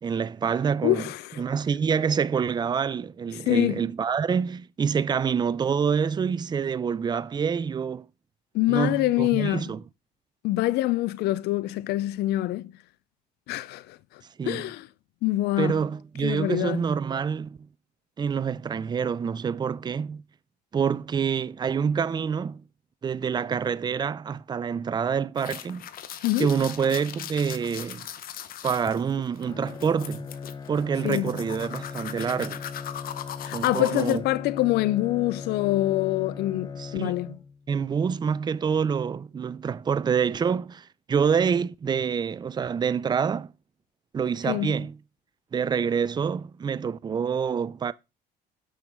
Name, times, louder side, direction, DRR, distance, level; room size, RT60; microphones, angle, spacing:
voice 1, 0.0-1.1 1.4-8.1 8.7-9.8 14.4-14.6 15.6-17.6 18.2-20.2 20.7-22.6 23.0-25.9 26.4-28.1 28.6-30.3 30.7-32.6 33.5-34.2 36.8-37.3 37.7-43.5 44.1-45.0 45.5-47.9, right 6 dB, 25° right, 0.5 m, -27 dB
voice 2, 0.8-1.4 3.3-3.8 8.5-9.7 10.4-12.7 13.5-14.0 14.4-14.9 15.2-15.8 16.2-16.8 26.2-26.5 31.0-31.3 33.4-37.4 44.5-44.8, left 17 dB, 75° left, 0.4 m, -25 dB
sound 1, 25.4-34.2, left 10 dB, 60° left, 0.8 m, -39 dB
Bowed string instrument, 29.4-37.8, left 5 dB, 25° left, 0.6 m, -39 dB
6.4 x 6.1 x 5.1 m
cardioid pair, 110°, 17 cm